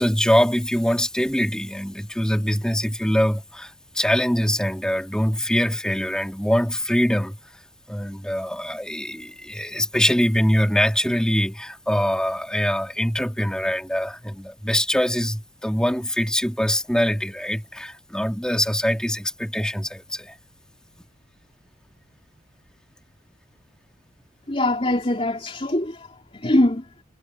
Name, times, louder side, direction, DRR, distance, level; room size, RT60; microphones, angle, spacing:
voice 1, 0.0-7.4 7.9-20.3, equal, 5° left, 4.2 m, -23 dB
voice 2, 24.5-26.1 26.3-26.8, left 1 dB, 30° left, 3.5 m, -22 dB
head